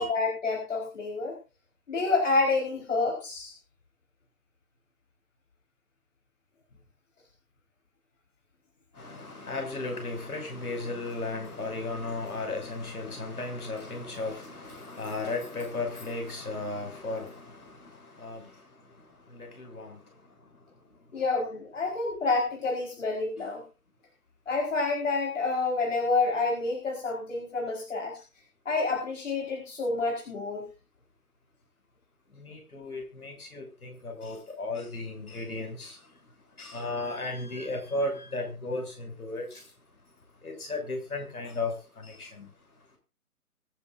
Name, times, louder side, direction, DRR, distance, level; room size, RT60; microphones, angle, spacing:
voice 1, 0.0-1.4 1.9-3.5 21.1-23.6 24.5-28.2 28.6-30.6, left 3 dB, 55° left, 0 dB, 4.8 m, -28 dB
voice 2, 9.0-17.7 18.2-18.4 19.3-20.0 32.4-35.9 36.6-39.5 40.4-42.5, left 2 dB, 70° left, 3 dB, 6.7 m, -35 dB
24.0 x 9.4 x 2.6 m, 0.32 s
figure-of-eight pair, 155°, 45 cm